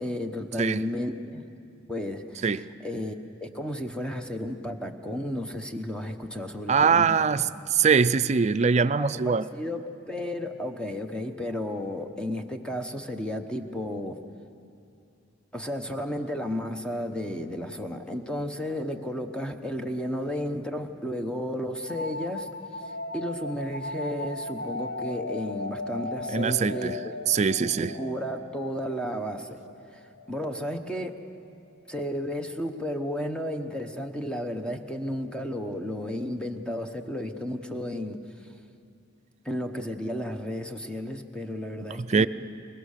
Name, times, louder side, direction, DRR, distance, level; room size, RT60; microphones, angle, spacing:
voice 1, 0.0-1.4 1.9-3.1 3.4-7.1 8.8-14.2 15.5-22.5 22.8-27.1 27.8-29.6 29.9-31.2 31.9-38.5 39.4-42.3, equal, 5° left, 5 dB, 0.9 m, -33 dB
voice 2, 6.7-7.4 7.7-9.4 26.3-26.9 27.3-27.9 42.0-42.3, right 5 dB, 35° right, 13 dB, 0.4 m, -22 dB
sound 1, 21.9-31.3, left 2 dB, 70° left, 1.2 m, -37 dB
22.5 x 20.5 x 6.6 m, 2.5 s
head